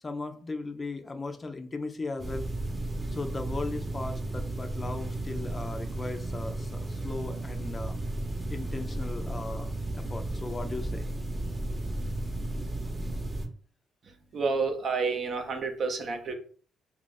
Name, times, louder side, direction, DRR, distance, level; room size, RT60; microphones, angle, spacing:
voice 1, 0.0-2.5 3.1-8.0 8.5-11.1, left 3 dB, 25° left, 6 dB, 0.5 m, -37 dB
sound 1, 2.2-13.5, right 2 dB, 20° right, 0.8 m, -34 dB
voice 2, 14.3-16.3, right 4 dB, 55° right, 5 dB, 0.7 m, -29 dB
2.8 x 2.4 x 3.9 m, 0.44 s
cardioid pair, 90°, 0 cm